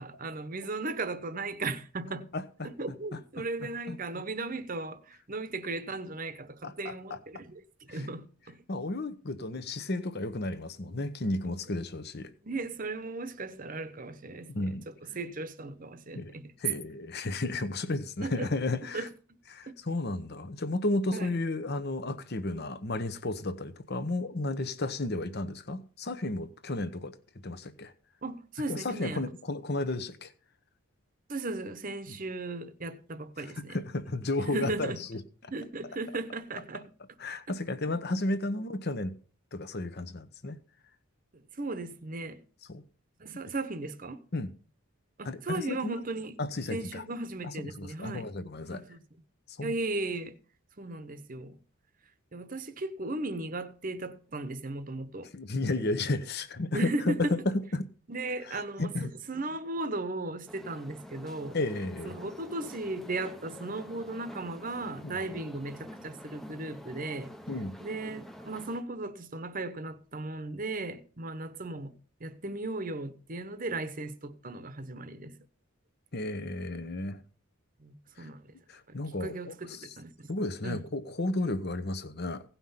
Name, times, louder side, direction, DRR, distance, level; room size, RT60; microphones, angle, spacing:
voice 1, 0.0-2.3 2.6-8.6 12.4-16.5 18.2-18.5 18.9-19.1 21.1-21.3 28.2-29.3 31.3-33.8 34.4-35.0 35.5-36.9 41.3-42.4 43.2-44.2 45.2-46.4 46.7-48.3 48.7-49.0 49.6-50.4 50.8-51.6 52.3-55.3 56.7-57.3 58.1-61.6 62.0-67.3 67.8-71.9 72.2-75.3 77.8-78.5 78.9-80.3 80.6-80.8, right 2 dB, 40° right, 0.9 m, -36 dB
voice 2, 2.3-2.7 3.1-3.2 3.9-4.0 6.6-7.2 7.9-8.1 8.7-12.3 14.5-14.9 16.1-19.1 19.5-27.2 27.4-27.9 28.7-30.3 32.1-32.2 33.4-35.2 37.2-39.1 39.5-40.6 42.7-42.8 44.3-44.5 45.2-45.9 46.4-47.0 47.4-48.8 49.5-49.7 55.3-57.9 58.5-59.1 61.5-62.1 65.0-65.2 67.5-67.8 76.1-77.2 78.2-78.3 78.7-79.9 80.3-82.4, left 2 dB, 50° left, 0.9 m, -33 dB
sound 1, 60.5-68.8, equal, ahead, 0.7 m, -47 dB
17.0 x 5.7 x 5.7 m
head